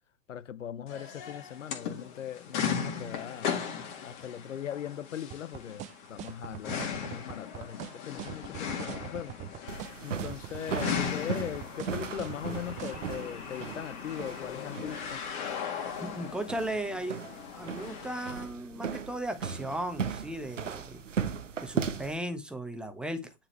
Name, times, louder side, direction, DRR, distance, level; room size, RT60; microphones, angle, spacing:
voice 1, 0.3-3.5 4.0-9.3 10.0-15.2, left 9 dB, 75° left, 0.5 m, -40 dB
sound 1, 0.9-18.3, left 7 dB, 40° left, 2.1 m, -38 dB
sound 2, 5.3-13.2, right 13 dB, 20° right, 0.6 m, -41 dB
sound 3, 9.7-22.2, right 7 dB, 75° right, 0.8 m, -37 dB
voice 2, 16.0-17.3 17.5-21.0 21.6-23.3, right 1 dB, ahead, 1.1 m, -36 dB
9.8 x 4.1 x 3.2 m
figure-of-eight pair, 100°, 38 cm